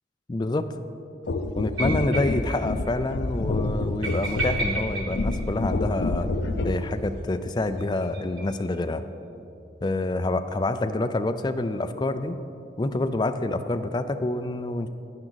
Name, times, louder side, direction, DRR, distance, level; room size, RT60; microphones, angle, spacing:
voice 1, 0.3-0.7 1.6-6.3 6.6-9.0 9.8-12.4 12.8-14.9, left 2 dB, 25° left, 9 dB, 0.4 m, -27 dB
sound 1, 1.3-6.9 7.7-7.9, left 2 dB, 70° left, 0.6 m, -28 dB
sound 2, 1.8-2.6 2.8-2.9 3.2-3.3 4.0-6.1 7.6-8.8, right 2 dB, 90° right, 1.7 m, -33 dB
11.0 x 9.9 x 4.0 m, 2.8 s
head